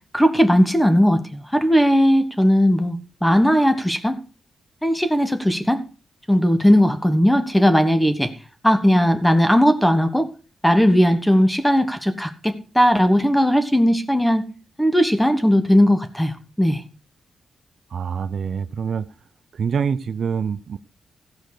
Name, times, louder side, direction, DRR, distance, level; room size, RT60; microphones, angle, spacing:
voice 1, 0.1-4.2 4.8-5.8 6.3-8.3 8.6-10.3 10.6-14.4 14.8-16.8, equal, 5° left, 1.4 m, -17 dB
voice 2, 17.9-19.1 19.5-20.8, right 6 dB, 65° right, 0.6 m, -25 dB
15.5 x 5.2 x 6.5 m
cardioid pair, 100°, 0 cm